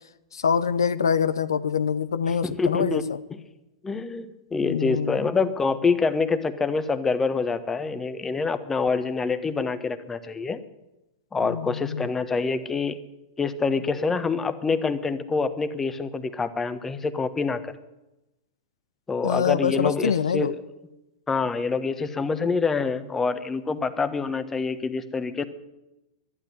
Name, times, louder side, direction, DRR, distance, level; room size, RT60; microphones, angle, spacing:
voice 1, 0.3-3.2 4.7-5.2 11.4-12.1 19.2-20.5, left 7 dB, 75° left, 14 dB, 0.6 m, -25 dB
voice 2, 2.3-3.0 3.3-3.4 3.8-10.6 11.3-13.0 13.4-17.7 19.1-20.6 21.3-25.4, left 4 dB, 15° left, 11 dB, 1.2 m, -26 dB
12.0 x 11.0 x 9.9 m, 0.97 s
figure-of-eight pair, 100°, 2 cm